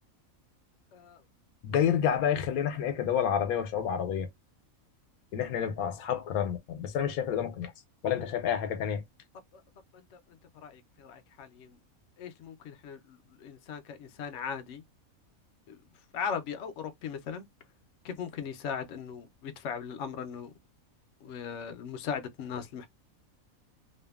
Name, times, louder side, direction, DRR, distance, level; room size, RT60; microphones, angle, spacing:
voice 1, 1.6-4.3 5.3-7.7 8.0-9.0, left 8 dB, 85° left, 1.1 m, -29 dB
voice 2, 10.6-11.8 12.2-14.8 15.7-15.8 16.1-17.5 18.0-20.5 21.2-22.9, left 7 dB, 65° left, 0.9 m, -38 dB
2.7 x 2.5 x 2.3 m
omnidirectional pair, 1.5 m